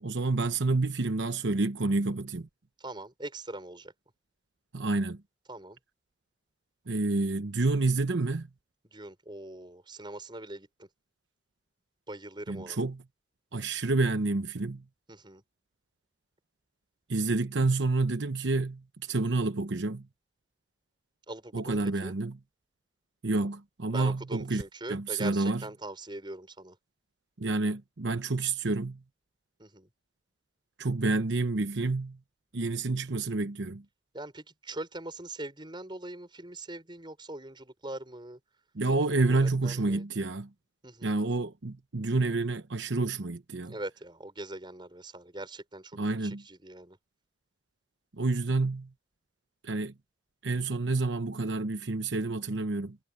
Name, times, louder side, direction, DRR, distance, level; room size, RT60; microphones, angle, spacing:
voice 1, 0.0-2.5 4.7-5.2 6.9-8.5 12.5-13.0 13.5-14.8 17.1-20.1 21.5-22.4 23.2-24.6 24.9-25.6 27.4-29.0 30.8-32.2 32.5-33.8 38.7-40.5 41.0-43.7 46.0-46.4 48.1-48.9 49.6-49.9 50.4-53.0, right 3 dB, 80° right, 0.9 m, -29 dB
voice 2, 2.8-3.9 5.5-5.8 8.8-10.9 12.1-12.8 15.1-15.4 21.3-22.1 23.9-26.8 29.6-29.9 34.1-38.4 38.9-40.0 40.8-41.1 43.7-47.0, right 2 dB, 25° right, 5.5 m, -42 dB
head